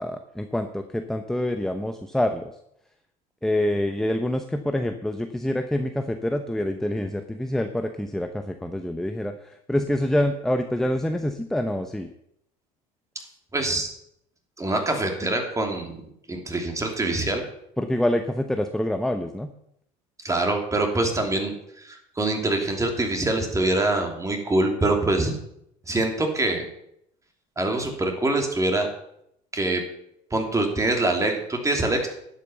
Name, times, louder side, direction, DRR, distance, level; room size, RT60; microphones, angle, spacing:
voice 1, 0.0-2.5 3.4-9.3 9.7-12.1 17.8-19.5, left 1 dB, 5° left, 7 dB, 0.9 m, -26 dB
voice 2, 13.5-13.9 14.6-16.0 16.3-17.4 20.2-25.4 25.9-26.6 27.6-28.9 29.5-29.8 30.3-32.1, right 2 dB, 20° right, 3 dB, 3.1 m, -24 dB
11.0 x 8.4 x 6.9 m, 0.75 s
supercardioid pair, 95°, 17 cm